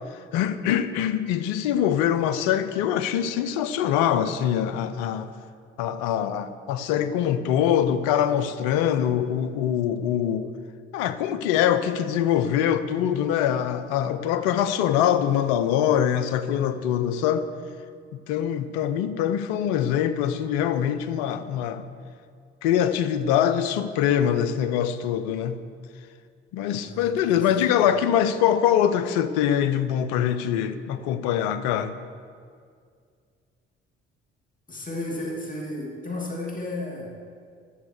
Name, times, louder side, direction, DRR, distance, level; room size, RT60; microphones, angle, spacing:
voice 1, 0.3-5.3 5.8-10.5 10.9-17.5 18.3-21.8 22.6-25.6 26.5-31.9, left 9 dB, 75° left, 11 dB, 0.7 m, -23 dB
voice 2, 26.8-27.9 34.7-37.1, left 1 dB, 25° left, -2 dB, 2.7 m, -34 dB
12.5 x 7.4 x 6.6 m, 2.1 s
hypercardioid pair, 50°, 32 cm